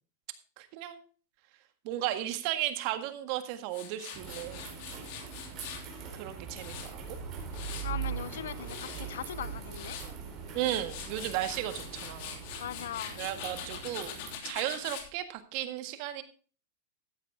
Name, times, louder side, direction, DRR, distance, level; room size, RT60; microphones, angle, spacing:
voice 1, 0.6-1.0 1.8-4.7 6.1-7.2 10.5-12.4 13.2-14.1 14.4-16.2, right 13 dB, 55° right, 1.7 m, -35 dB
Tools, 3.7-5.9 6.3-8.0 8.4-9.0 9.5-10.1 10.5-15.1, left 8 dB, 60° left, 3.0 m, -43 dB
sound 1, 4.1-14.4, right 7 dB, 35° right, 4.4 m, -41 dB
voice 2, 7.8-10.0 12.6-13.2, left 10 dB, 85° left, 0.7 m, -39 dB
13.5 x 9.3 x 3.5 m
supercardioid pair, 125°, 0 cm